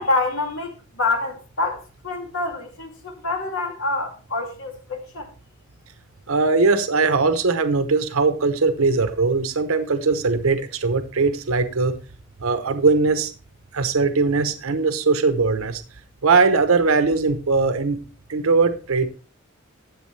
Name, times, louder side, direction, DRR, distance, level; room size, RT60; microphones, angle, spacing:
voice 1, 0.0-5.3, left 2 dB, 75° left, 2 dB, 2.3 m, -26 dB
voice 2, 6.3-12.0 12.4-13.3 13.7-15.8 16.2-18.0 18.3-19.1, right 4 dB, 90° right, 10 dB, 0.9 m, -20 dB
13.0 x 8.0 x 3.2 m, 0.35 s
head